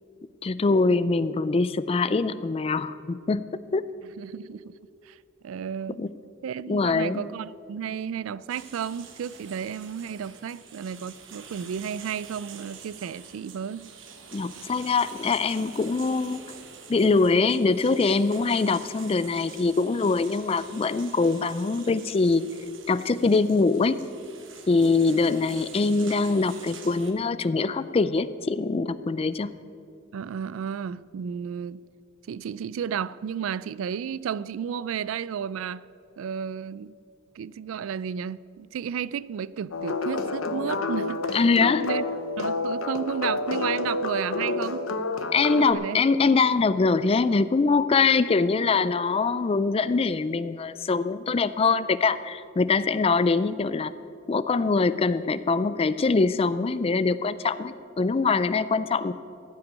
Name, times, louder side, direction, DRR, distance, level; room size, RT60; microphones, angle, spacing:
voice 1, 0.4-3.4 3.7-3.8 6.0-6.1 6.7-7.3 14.3-16.4 16.9-22.4 22.9-24.0 24.7-29.5 41.3-41.8 45.3-53.9 54.3-59.1, left 4 dB, 30° left, 15 dB, 0.3 m, -23 dB
voice 2, 4.2-4.7 5.0-5.2 5.4-6.1 6.4-13.9 30.1-31.8 32.3-35.8 36.2-36.9 37.4-42.0 42.4-44.9 45.5-46.0, right 8 dB, 80° right, 19 dB, 0.3 m, -33 dB
sound 1, 8.5-27.1, right 6 dB, 65° right, 1.3 m, -46 dB
sound 2, 39.7-45.7, left 3 dB, 80° left, 0.8 m, -29 dB
15.0 x 5.9 x 9.0 m, 2.5 s
head